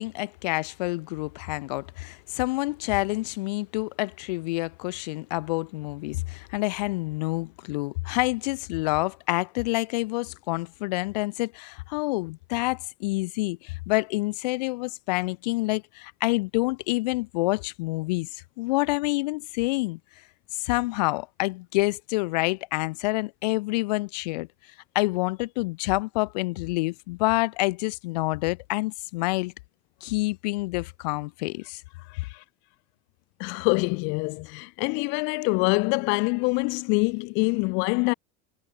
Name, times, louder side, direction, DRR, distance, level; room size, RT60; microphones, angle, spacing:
voice 1, 0.0-20.0 20.6-24.5 24.9-29.5 30.0-31.8, left 22 dB, 80° left, 2.1 m, -28 dB
voice 2, 32.1-32.4 33.4-38.1, left 31 dB, 65° left, 0.9 m, -25 dB
supercardioid pair, 110°, 21 cm